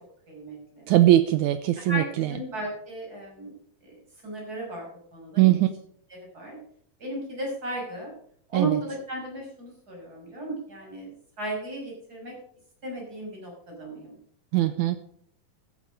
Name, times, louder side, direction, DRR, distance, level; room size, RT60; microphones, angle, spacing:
voice 1, 0.3-0.9 1.8-3.5 3.8-4.0 4.2-5.6 6.1-6.6 7.0-8.1 8.5-11.1 11.4-12.3 12.8-14.2, right 1 dB, 25° right, -1 dB, 6.2 m, -35 dB
voice 2, 0.9-2.3 5.4-5.7 8.5-8.8 14.5-15.0, right 14 dB, 80° right, 11 dB, 1.7 m, -20 dB
14.0 x 10.0 x 5.3 m, 0.62 s
omnidirectional pair, 4.1 m